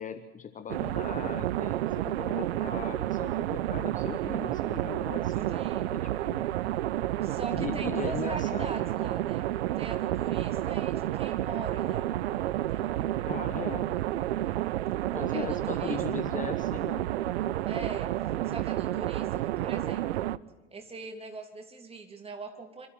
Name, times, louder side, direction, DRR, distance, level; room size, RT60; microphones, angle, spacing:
voice 1, 0.0-5.6 5.9-6.5 7.5-8.7 13.3-13.9 15.1-17.0, left 7 dB, 20° left, 9 dB, 1.0 m, -39 dB
Short Circuit, 0.7-20.4, right 14 dB, 65° right, 0.7 m, -30 dB
voice 2, 5.5-5.9 7.2-9.4 9.8-12.1 12.7-13.1 15.1-16.3 17.6-20.3 20.7-22.9, right 3 dB, 15° right, 4 dB, 3.1 m, -42 dB
27.0 x 13.5 x 7.5 m, 1.1 s
figure-of-eight pair, 75°, 35 cm